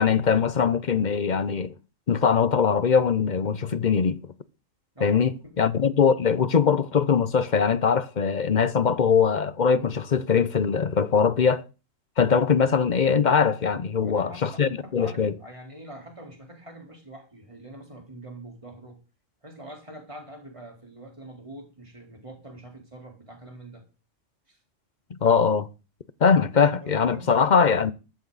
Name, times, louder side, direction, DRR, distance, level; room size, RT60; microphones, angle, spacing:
voice 1, 0.0-1.7 2.1-4.3 5.0-11.6 12.2-15.3 25.1-25.7 26.2-27.9, left 6 dB, 45° left, 0.8 m, -22 dB
voice 2, 4.9-5.7 13.9-19.0 19.4-23.8 24.5-24.6 26.8-27.4, right 1 dB, 25° right, 4.1 m, -44 dB
14.0 x 13.5 x 4.0 m
omnidirectional pair, 1.3 m